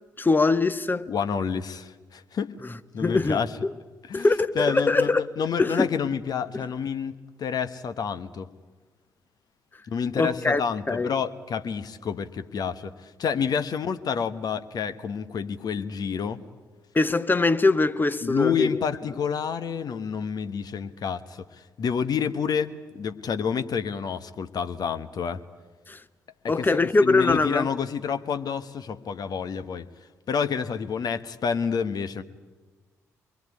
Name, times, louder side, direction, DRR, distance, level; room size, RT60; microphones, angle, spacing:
voice 1, 0.2-1.1 3.0-3.7 4.1-5.2 5.6-5.9 6.5-6.6 10.2-10.6 10.9-11.1 16.9-18.8 25.9-26.0 26.5-27.7, left 3 dB, 20° left, 1.1 m, -22 dB
voice 2, 1.1-2.5 2.9-3.5 4.1-4.3 4.5-8.5 9.9-16.4 18.2-25.4 26.4-26.7 27.0-29.9 30.3-32.2, left 6 dB, 50° left, 1.3 m, -29 dB
24.5 x 21.5 x 9.8 m
figure-of-eight pair, 45°, 9 cm